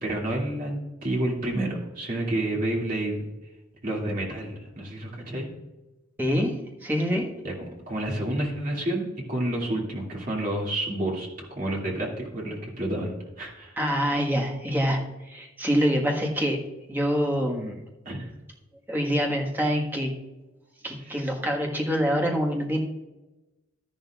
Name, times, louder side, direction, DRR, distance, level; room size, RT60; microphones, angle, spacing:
voice 1, 0.0-3.3 3.8-5.5 7.4-7.5 7.9-13.8 18.1-18.3 21.0-21.2, right 1 dB, 45° right, -2 dB, 2.4 m, -29 dB
voice 2, 6.2-7.3 13.8-16.6 16.9-17.8 18.9-20.1 20.8-22.8, equal, 10° right, -1 dB, 1.5 m, -25 dB
12.5 x 11.0 x 2.4 m, 1.1 s
head